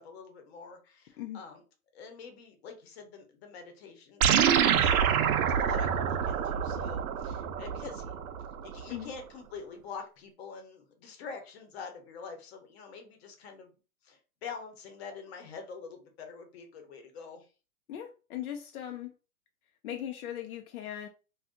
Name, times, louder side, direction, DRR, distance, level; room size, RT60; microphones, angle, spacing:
voice 1, 0.0-1.6 1.9-8.1 8.6-13.7 14.0-17.5, left 5 dB, 45° left, 0.9 m, -46 dB
sound 1, 4.2-8.9, right 8 dB, 70° right, 0.6 m, -27 dB
voice 2, 17.9-19.1 19.8-21.1, left 11 dB, 70° left, 0.6 m, -39 dB
2.6 x 2.4 x 3.6 m
hypercardioid pair, 160°, 44 cm